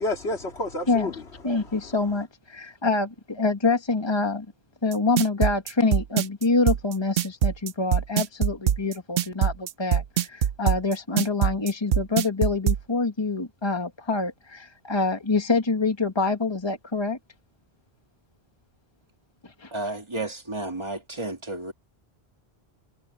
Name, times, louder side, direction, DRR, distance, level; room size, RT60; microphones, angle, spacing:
voice 1, 0.0-2.2, left 2 dB, 75° left, 2.9 m, -32 dB
voice 2, 1.4-4.5 4.8-17.2 19.4-19.7, left 3 dB, 25° left, 1.8 m, -26 dB
sound 1, 4.9-12.8, right 9 dB, 65° right, 0.8 m, -22 dB
voice 3, 19.7-21.7, right 2 dB, 25° right, 2.2 m, -32 dB
omnidirectional pair, 1.1 m